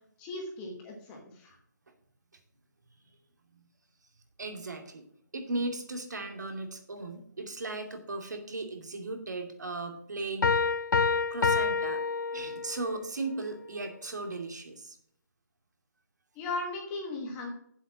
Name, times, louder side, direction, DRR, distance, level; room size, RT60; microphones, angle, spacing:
voice 1, 0.2-1.6 16.3-17.5, left 2 dB, 10° left, 1 dB, 1.2 m, -37 dB
voice 2, 4.4-5.0 5.3-10.5 11.3-12.0 12.3-15.0, right 2 dB, 70° right, 5 dB, 2.5 m, -37 dB
Piano, 10.4-12.9, left 5 dB, 85° left, 0.5 m, -27 dB
8.0 x 7.7 x 6.0 m, 0.65 s
hypercardioid pair, 175°, 10 cm